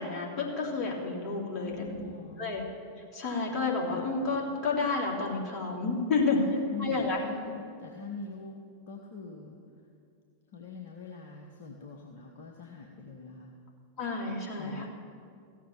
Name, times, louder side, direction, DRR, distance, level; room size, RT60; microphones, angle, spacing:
voice 1, 0.0-2.0 2.4-2.6 3.1-6.4 6.8-7.2 14.0-14.9, left 4 dB, 35° left, -2 dB, 3.1 m, -30 dB
voice 2, 1.5-2.6 6.3-7.4 7.8-8.6 8.9-9.6 10.5-13.5 14.6-14.9, left 4 dB, 55° left, 1 dB, 1.2 m, -43 dB
15.0 x 7.4 x 8.7 m, 2.3 s
figure-of-eight pair, 90°, 0 cm